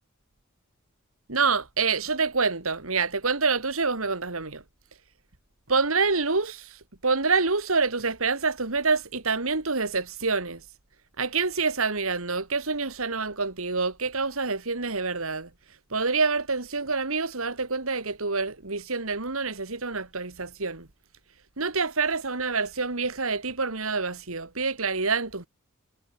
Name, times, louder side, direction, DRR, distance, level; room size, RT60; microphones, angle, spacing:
voice 1, 1.3-4.6 5.7-10.6 11.2-15.5 15.9-20.9 21.6-25.5, right 4 dB, 70° right, 2.5 m, -27 dB
head